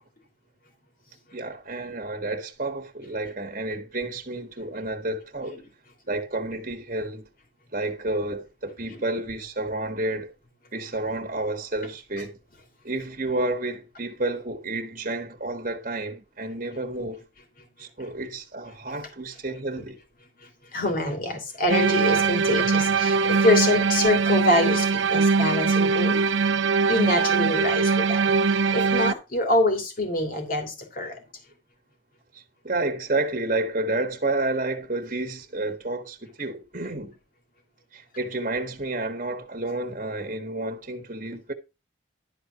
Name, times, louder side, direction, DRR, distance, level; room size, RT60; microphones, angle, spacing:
voice 1, 1.3-5.6 6.1-7.2 7.7-10.3 10.7-12.4 12.8-17.2 17.8-20.0 22.6-22.7 23.8-23.9 32.3-37.1 37.9-41.5, right 2 dB, 40° right, 1.6 m, -30 dB
voice 2, 20.7-26.2 26.9-28.2 28.7-31.2, left 2 dB, 45° left, 3.2 m, -25 dB
sound 1, 21.7-29.1, right 5 dB, 75° right, 0.5 m, -22 dB
12.0 x 4.6 x 5.8 m
head